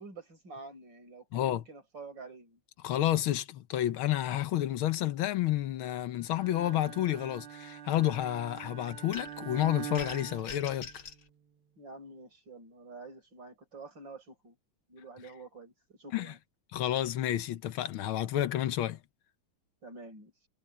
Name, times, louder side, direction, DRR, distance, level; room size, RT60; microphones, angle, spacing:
voice 1, 0.0-2.6 10.4-10.6 11.8-14.6 14.9-16.4 19.8-20.3, right 3 dB, 60° right, 6.3 m, -48 dB
voice 2, 1.3-1.6 2.8-10.9 16.1-16.3 16.7-19.0, left 13 dB, 85° left, 1.7 m, -30 dB
Bowed string instrument, 6.3-11.3, right 10 dB, 85° right, 2.2 m, -44 dB
sound 1, 9.1-9.5 9.9-11.2, left 3 dB, 55° left, 2.4 m, -44 dB
omnidirectional pair, 2.3 m